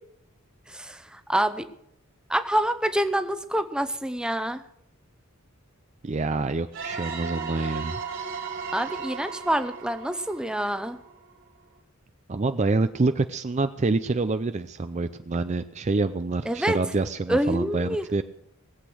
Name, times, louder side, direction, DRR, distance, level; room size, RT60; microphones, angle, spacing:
voice 1, 0.7-1.7 2.3-4.6 8.7-11.0 16.4-16.8 17.3-18.0, right 1 dB, 5° right, 9 dB, 0.7 m, -26 dB
voice 2, 6.0-8.0 12.3-18.2, right 3 dB, 30° right, 10 dB, 0.4 m, -26 dB
sound 1, 6.7-11.3, right 5 dB, 55° right, 3.1 m, -36 dB
19.5 x 8.2 x 6.2 m, 0.75 s
head